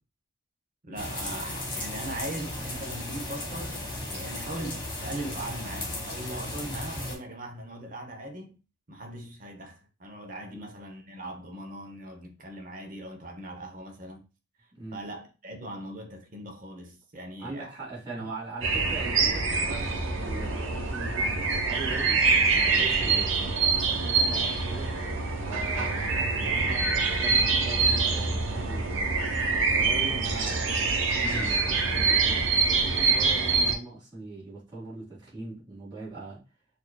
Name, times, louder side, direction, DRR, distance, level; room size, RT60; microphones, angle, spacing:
voice 1, 0.8-8.6 8.9-14.3 14.9-17.7 18.2-18.3, right 1 dB, 40° right, 0.8 m, -40 dB
sound 1, 1.0-7.2, left 1 dB, 25° left, 1.3 m, -35 dB
voice 2, 17.4-24.9 25.4-29.2 29.7-32.5 32.8-36.4, right 3 dB, 20° right, 2.1 m, -41 dB
sound 2, 18.6-33.7, right 4 dB, 75° right, 0.9 m, -25 dB
6.6 x 2.6 x 2.3 m
head